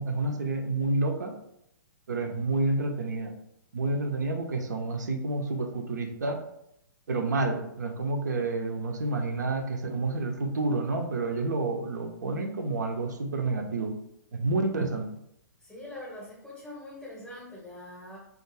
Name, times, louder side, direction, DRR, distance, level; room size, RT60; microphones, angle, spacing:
voice 1, 0.0-1.4 2.1-3.3 3.7-6.4 7.1-14.0 14.3-15.2, right 3 dB, 65° right, 4 dB, 0.4 m, -29 dB
voice 2, 15.6-18.2, left 1 dB, 5° left, -6 dB, 0.7 m, -43 dB
2.4 x 2.3 x 2.9 m, 0.79 s
figure-of-eight pair, 115°, 10 cm